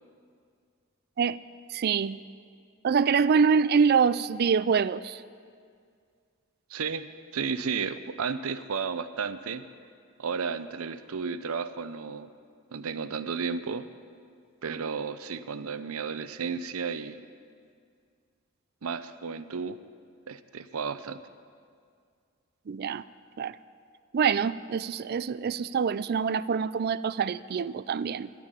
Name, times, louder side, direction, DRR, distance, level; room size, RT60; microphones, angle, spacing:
voice 1, 1.7-2.2 2.8-5.2 22.7-23.0 23.4-23.6 24.1-28.3, right 6 dB, 45° right, 16 dB, 0.3 m, -25 dB
voice 2, 6.7-9.6 10.2-12.3 12.7-13.9 14.6-17.2 18.8-19.8 20.3-21.2, right 5 dB, 80° right, 12 dB, 0.6 m, -33 dB
12.5 x 9.0 x 9.8 m, 2.2 s
head